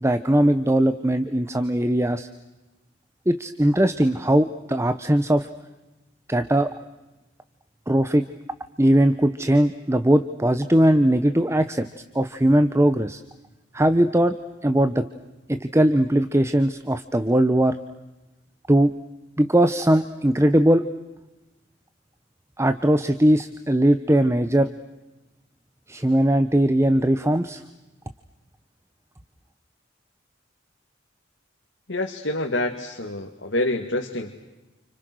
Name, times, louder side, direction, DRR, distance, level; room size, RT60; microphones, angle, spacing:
voice 1, 0.0-2.3 3.3-5.5 6.3-6.7 7.9-8.2 8.8-11.9 12.1-13.2 13.7-14.3 14.6-15.0 15.5-17.8 18.7-18.9 19.4-20.8 22.6-24.7 25.9-27.6, right 1 dB, 15° right, 11 dB, 0.9 m, -20 dB
voice 2, 31.9-34.4, left 1 dB, 70° left, 2 dB, 2.5 m, -27 dB
30.0 x 30.0 x 6.4 m, 1.0 s
head